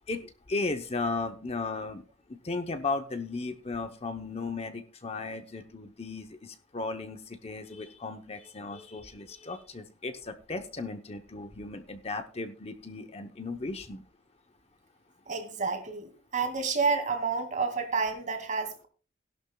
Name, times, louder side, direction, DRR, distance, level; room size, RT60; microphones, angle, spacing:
voice 1, 0.1-2.0 2.3-14.0, left 3 dB, 30° left, 0.8 m, -36 dB
voice 2, 15.3-18.9, right 4 dB, 40° right, 2.3 m, -30 dB
17.0 x 11.5 x 2.3 m
head